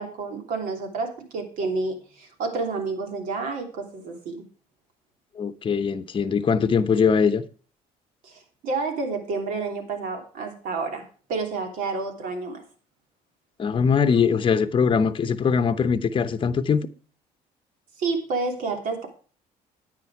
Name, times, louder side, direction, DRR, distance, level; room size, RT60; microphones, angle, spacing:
voice 1, 0.0-4.4 8.2-12.6 18.0-19.1, right 3 dB, 70° right, 3.1 m, -29 dB
voice 2, 5.4-7.4 13.6-16.9, left 6 dB, 35° left, 0.9 m, -21 dB
9.8 x 9.2 x 4.7 m
cardioid pair, 100°, 15 cm